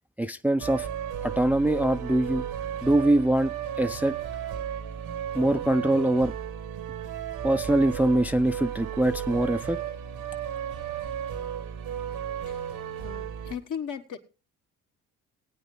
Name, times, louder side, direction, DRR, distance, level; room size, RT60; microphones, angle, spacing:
voice 1, 0.2-0.9 1.2-2.4 2.8-3.5 3.8-4.1 5.3-6.3 7.4-9.8, right 1 dB, 5° right, 10 dB, 0.5 m, -23 dB
sound 1, 0.6-13.5, right 9 dB, 75° right, 1.3 m, -34 dB
voice 2, 13.0-14.2, left 8 dB, 55° left, 4 dB, 1.5 m, -37 dB
19.0 x 8.9 x 3.2 m, 0.33 s
hypercardioid pair, 55°, 36 cm